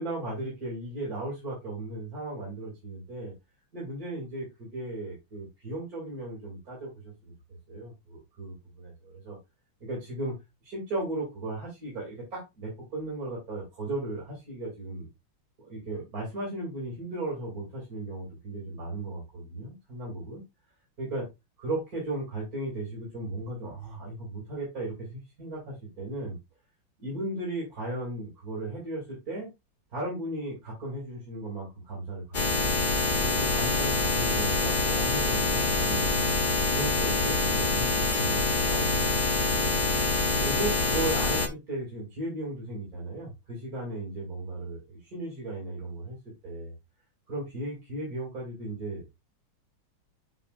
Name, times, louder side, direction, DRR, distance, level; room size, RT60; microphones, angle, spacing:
voice 1, 0.0-3.3 3.7-7.3 7.7-9.4 9.8-10.3 10.6-15.1 15.6-20.4 21.0-21.3 21.6-26.4 27.0-29.5 29.9-36.3 36.7-39.7 40.4-46.2 46.4-46.7 47.3-49.0, right 2 dB, 45° right, -4 dB, 3.4 m, -36 dB
sound 1, 32.3-41.5, left 3 dB, 50° left, 0.5 m, -26 dB
8.0 x 5.8 x 2.5 m, 0.22 s
omnidirectional pair, 2.2 m